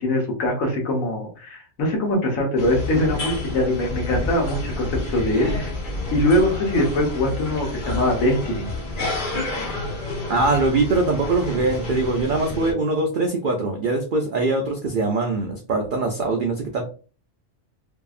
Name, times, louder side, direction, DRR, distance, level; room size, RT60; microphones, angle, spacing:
voice 1, 0.0-5.7 6.1-8.7, left 1 dB, 75° left, 1 dB, 1.3 m, -22 dB
sound 1, 2.6-12.7, left 2 dB, 40° left, 0.9 m, -29 dB
voice 2, 10.3-16.8, right 3 dB, 75° right, 2 dB, 0.4 m, -22 dB
2.7 x 2.6 x 2.3 m, 0.38 s
omnidirectional pair, 1.4 m